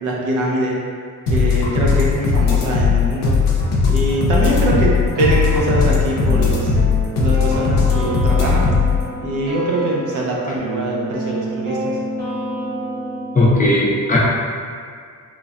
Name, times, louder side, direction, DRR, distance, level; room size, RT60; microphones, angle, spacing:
voice 1, 0.0-0.8 1.3-3.4 3.9-8.7 9.2-12.0, right 1 dB, 70° right, -4 dB, 0.6 m, -22 dB
sound 1, 1.3-9.0, left 5 dB, 85° left, 0.5 m, -17 dB
sound 2, 4.3-13.5, right 1 dB, 30° right, 0.7 m, -29 dB
voice 2, 13.3-14.2, left 1 dB, 25° left, -5 dB, 0.4 m, -16 dB
3.1 x 2.1 x 2.4 m, 2.1 s
cardioid pair, 115°, 32 cm